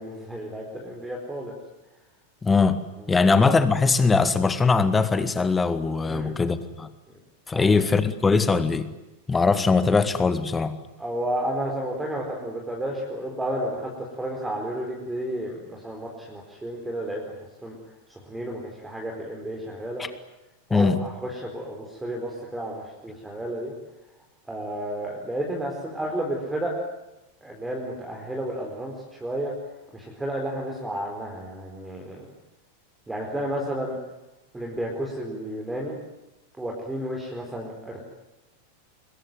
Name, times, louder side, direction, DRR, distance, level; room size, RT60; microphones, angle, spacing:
voice 1, 0.0-1.5 3.1-3.2 6.1-6.3 7.5-7.7 11.0-17.2 17.6-17.7 18.3-20.0 20.7-23.7 24.5-26.7 27.4-29.5 29.9-32.2 33.1-34.0 34.5-36.0 36.6-38.0, right 1 dB, 5° right, -1 dB, 4.7 m, -32 dB
voice 2, 2.4-6.9 7.5-8.9 9.3-10.8 20.0-20.1 20.7-21.1, left 4 dB, 15° left, 12 dB, 1.9 m, -21 dB
25.5 x 22.0 x 9.4 m, 0.97 s
figure-of-eight pair, 90°, 0 cm